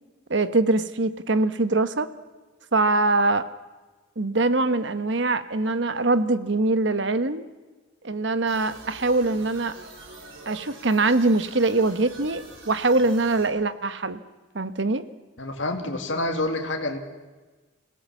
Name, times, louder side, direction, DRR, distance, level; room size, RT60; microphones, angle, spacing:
voice 1, 0.3-2.1 2.7-3.5 4.2-7.4 8.0-9.7 10.5-14.2 14.5-15.0, right 2 dB, 65° right, 12 dB, 1.1 m, -23 dB
sound 1, 8.5-13.5, right 2 dB, 85° right, 4.8 m, -45 dB
voice 2, 15.4-17.0, left 2 dB, 70° left, 4 dB, 2.0 m, -27 dB
26.5 x 17.0 x 7.3 m, 1.3 s
head